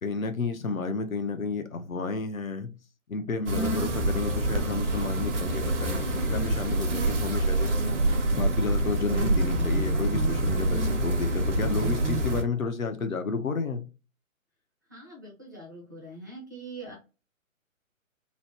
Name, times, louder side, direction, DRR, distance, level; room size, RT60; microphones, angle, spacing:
voice 1, 0.0-2.7 3.1-7.8 8.3-13.8, left 4 dB, 80° left, 0.7 m, -31 dB
sound 1, 3.5-12.4, right 1 dB, 60° right, 0.9 m, -26 dB
voice 2, 14.9-16.9, right 2 dB, 15° right, 0.5 m, -43 dB
3.0 x 2.0 x 2.9 m
figure-of-eight pair, 135°, 41 cm